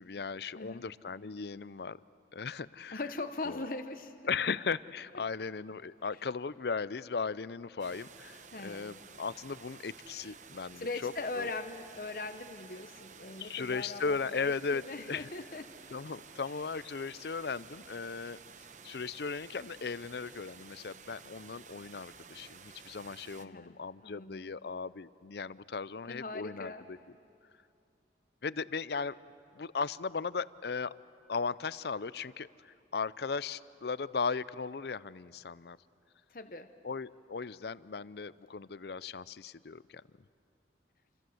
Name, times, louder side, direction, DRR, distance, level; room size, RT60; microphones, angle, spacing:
voice 1, 0.0-2.0 2.3-3.0 3.5-3.6 4.3-11.5 13.4-15.3 15.9-18.4 18.8-27.0 28.4-29.2 29.5-30.9 31.3-35.8 36.8-40.0, left 5 dB, 65° left, 18 dB, 0.5 m, -37 dB
voice 2, 2.9-4.3 8.5-9.0 10.8-15.7 23.4-24.5 26.1-26.9 36.3-36.7, left 3 dB, 50° left, 8 dB, 1.0 m, -40 dB
sound 1, 7.8-23.5, right 6 dB, 45° right, 0.9 m, -53 dB
28.0 x 26.5 x 7.8 m, 2.6 s
head